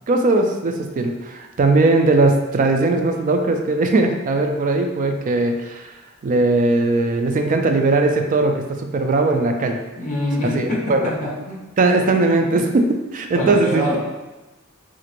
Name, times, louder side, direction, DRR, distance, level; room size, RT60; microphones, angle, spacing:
voice 1, 0.1-5.9 6.2-9.8 10.5-11.1 11.8-14.0, right 2 dB, 40° right, 4 dB, 0.3 m, -19 dB
voice 2, 10.0-11.6 13.3-14.0, left 1 dB, 35° left, -5 dB, 0.9 m, -24 dB
2.9 x 2.5 x 2.9 m, 1.1 s
head